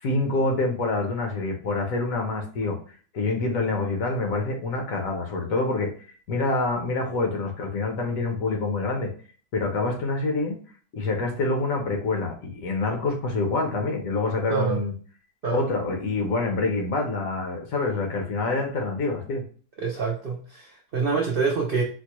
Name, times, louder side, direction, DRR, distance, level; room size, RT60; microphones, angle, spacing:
voice 1, 0.0-2.8 3.1-9.1 9.5-10.6 10.9-14.9 15.5-19.5, left 3 dB, 65° left, 2 dB, 1.1 m, -26 dB
voice 2, 14.5-14.8 15.4-15.7 19.8-21.8, right 5 dB, 75° right, -1 dB, 0.5 m, -26 dB
4.4 x 2.1 x 2.9 m, 0.43 s
omnidirectional pair, 1.7 m